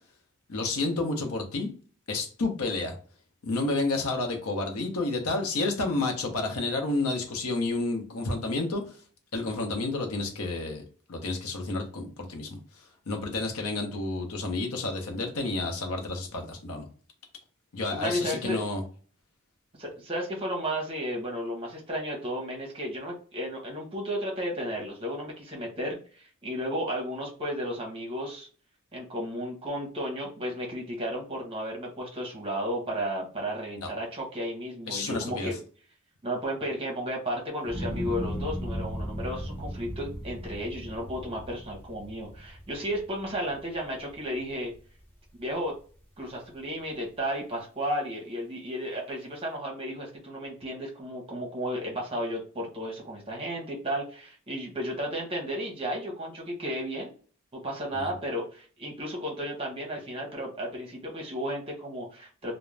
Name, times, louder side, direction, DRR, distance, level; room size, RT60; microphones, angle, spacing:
voice 1, 0.5-1.7 2.1-2.9 3.4-8.9 9.3-10.8 11.1-12.6 13.1-16.9 17.7-18.8 33.8-33.9 34.9-35.5, left 2 dB, 80° left, 3 dB, 0.7 m, -30 dB
voice 2, 17.9-18.6 19.8-28.5 28.9-35.6 36.2-44.7 45.4-45.7 46.2-57.1 57.5-62.5, equal, 25° right, -1 dB, 0.8 m, -33 dB
sound 1, 37.6-44.0 44.4-45.0, equal, 10° left, 0.6 m, -36 dB
2.4 x 2.1 x 3.1 m, 0.41 s
head